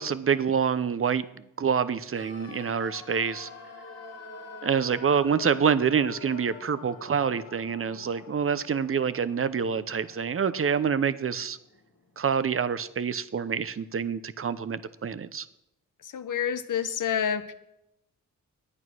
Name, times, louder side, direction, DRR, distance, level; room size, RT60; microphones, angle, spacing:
voice 1, 0.0-3.5 4.6-11.6 12.2-15.5, right 6 dB, 40° right, 15 dB, 0.7 m, -27 dB
sound 1, 2.1-12.1 12.3-12.4, left 3 dB, 50° left, 1.6 m, -46 dB
voice 2, 16.0-17.5, left 8 dB, 70° left, 11 dB, 0.9 m, -28 dB
11.0 x 9.1 x 6.2 m, 0.83 s
cardioid pair, 65°, 33 cm